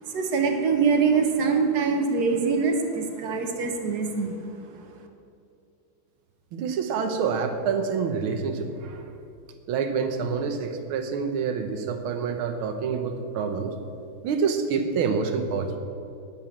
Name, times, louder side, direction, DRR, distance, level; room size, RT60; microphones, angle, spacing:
voice 1, 0.0-4.8, right 5 dB, 55° right, 4 dB, 1.4 m, -24 dB
voice 2, 6.5-9.0 9.7-13.7 14.2-15.8, right 5 dB, 80° right, 6 dB, 1.8 m, -27 dB
9.8 x 7.4 x 7.2 m, 2.6 s
omnidirectional pair, 2.3 m